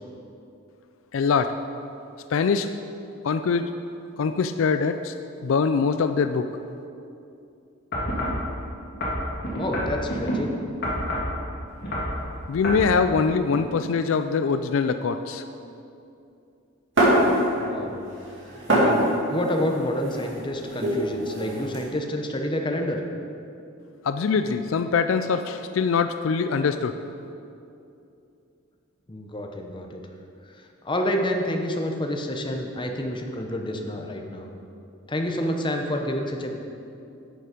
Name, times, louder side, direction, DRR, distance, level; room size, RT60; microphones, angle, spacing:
voice 1, 1.1-1.5 2.3-2.7 3.2-3.7 4.2-5.1 5.4-6.5 12.5-15.4 24.0-27.0, left 5 dB, 70° left, 9 dB, 0.4 m, -23 dB
sound 1, 7.9-8.4 9.0-10.4 10.8-11.3 11.8-12.2 12.6-12.9 13.5-13.6, equal, 50° left, 2.2 m, -28 dB
voice 2, 9.5-10.5 17.6-18.0 18.7-23.0 29.1-30.0 30.8-34.5 35.1-36.5, left 1 dB, 25° left, 3 dB, 0.8 m, -28 dB
sound 2, 17.0-17.8 18.1-21.8, right 1 dB, 60° right, 2.6 m, -24 dB
11.0 x 6.8 x 5.1 m, 2.6 s
head